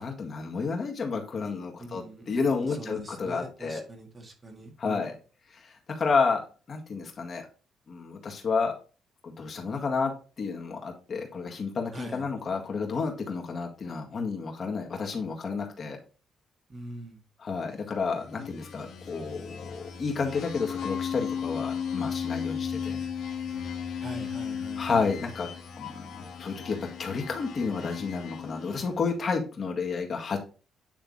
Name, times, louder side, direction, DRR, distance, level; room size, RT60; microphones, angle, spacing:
voice 1, 0.0-3.8 4.8-5.2 5.5-6.4 6.7-7.5 7.9-8.7 9.2-16.0 17.4-23.0 24.8-25.5 25.8-30.4, left 4 dB, 45° left, 2 dB, 1.8 m, -31 dB
voice 2, 1.8-5.1 11.9-12.2 16.7-17.2 24.0-24.8 25.8-25.9, right 1 dB, 30° right, 4 dB, 1.7 m, -42 dB
sound 1, 18.1-29.0, left 7 dB, 80° left, 1.6 m, -35 dB
9.1 x 3.4 x 3.9 m, 0.36 s
cardioid pair, 90°, 0 cm